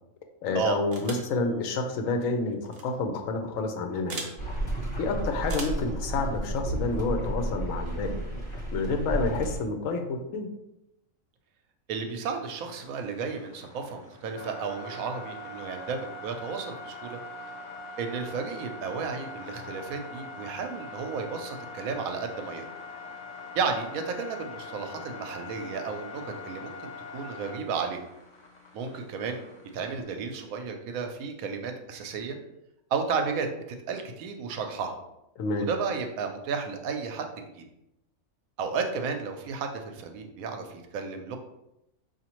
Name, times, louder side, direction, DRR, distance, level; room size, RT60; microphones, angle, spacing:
voice 1, 0.4-4.3 5.0-8.1 8.7-10.5 35.4-35.7, left 3 dB, 75° left, 5 dB, 1.0 m, -29 dB
sound 1, 0.9-1.3 2.6-2.8 4.1-4.4 5.4-5.9, right 3 dB, 55° right, 0.8 m, -38 dB
sound 2, 4.4-9.6, right 1 dB, 25° left, 0.9 m, -32 dB
voice 2, 11.9-17.2 18.0-22.6 23.5-28.0 28.7-29.4 29.7-32.4 32.9-33.5 33.9-34.9 35.5-37.6 38.6-41.4, right 5 dB, 85° right, 5 dB, 1.0 m, -33 dB
sound 3, 12.5-30.0, left 2 dB, 50° left, 0.5 m, -43 dB
5.0 x 2.6 x 2.9 m, 0.87 s
omnidirectional pair, 1.4 m